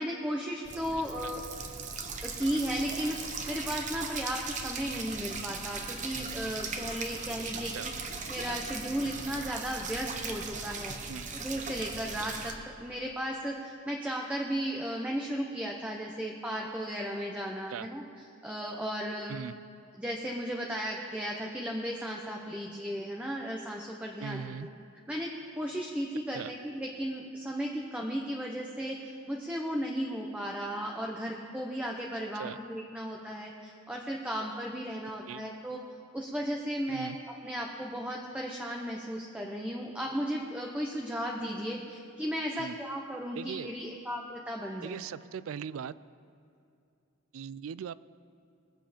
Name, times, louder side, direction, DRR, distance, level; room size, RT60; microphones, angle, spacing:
voice 1, 0.0-1.4 2.2-7.9 8.3-11.0 11.3-12.5 12.8-18.0 18.4-19.4 20.0-24.6 25.1-35.8 36.1-37.2 37.4-45.0, equal, 5° right, -1 dB, 0.8 m, -35 dB
sound 1, 0.7-12.5, right 4 dB, 35° right, 0.9 m, -38 dB
voice 2, 24.2-24.7 26.3-26.5 32.4-32.6 35.3-35.4 36.9-37.2 42.5-42.8 43.4-43.7 44.8-46.0 47.3-47.9, right 7 dB, 70° right, 18 dB, 0.3 m, -39 dB
21.0 x 7.6 x 5.1 m, 2.6 s
head